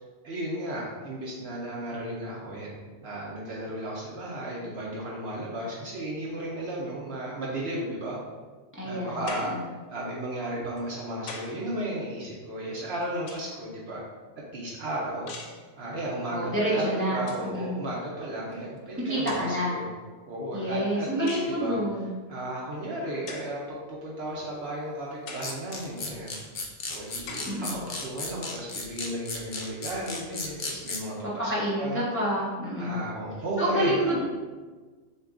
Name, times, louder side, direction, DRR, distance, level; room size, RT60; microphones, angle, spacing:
voice 1, 0.2-8.2 8.8-14.0 14.5-15.3 15.8-19.9 20.2-21.8 22.3-26.3 26.9-31.5 31.8-32.0 32.8-34.2, right 1 dB, 60° right, -4 dB, 0.8 m, -34 dB
voice 2, 8.7-9.2 9.5-9.6 16.3-17.8 18.9-19.8 20.5-22.1 27.5-27.8 31.4-33.0 33.6-34.2, equal, 10° left, -8 dB, 0.8 m, -28 dB
sound 1, 9.3-9.7 10.8-11.7 12.8-13.7 15.3-15.7 16.8-16.9 17.2-17.5 18.5-18.6 19.3-19.8 21.3-21.6 23.3-23.6 24.3-24.4 25.3-25.6 26.3-26.4 27.3-27.6, left 4 dB, 80° left, 1.0 m, -42 dB
sound 2, 25.4-31.0, left 3 dB, 60° left, 0.5 m, -35 dB
6.5 x 2.3 x 2.4 m, 1.4 s
omnidirectional pair, 1.4 m